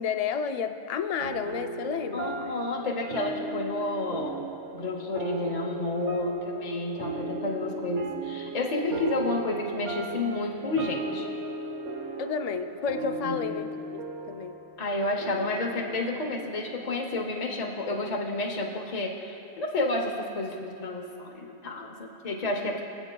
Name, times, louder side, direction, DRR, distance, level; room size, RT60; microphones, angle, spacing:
voice 1, 0.0-2.3 12.2-14.0 14.3-14.5 22.6-22.8, left 6 dB, 70° left, 8 dB, 0.3 m, -31 dB
sound 1, 1.2-18.0, right 2 dB, 80° right, 1.1 m, -37 dB
voice 2, 2.1-4.5 4.7-11.3 13.2-13.4 14.8-22.8, left 2 dB, 40° left, 0 dB, 0.8 m, -30 dB
22.0 x 8.1 x 2.2 m, 2.8 s
omnidirectional pair, 1.2 m